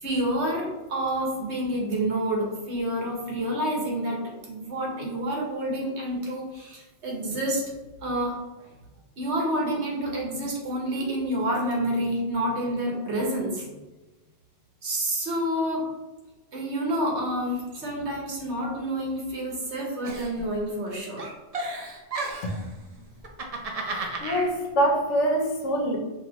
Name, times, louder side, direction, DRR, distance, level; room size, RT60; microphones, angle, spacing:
voice 1, 0.0-7.6 8.0-8.4 9.2-13.8 14.8-15.8 16.5-21.3, right 1 dB, 70° right, -2 dB, 1.4 m, -28 dB
Giggle, 20.0-20.9 21.2-22.6 23.2-24.5, right 2 dB, 45° right, 0.5 m, -33 dB
voice 2, 24.2-26.0, right 1 dB, 90° left, 2 dB, 1.1 m, -24 dB
5.4 x 2.8 x 2.9 m, 1.1 s
omnidirectional pair, 1.2 m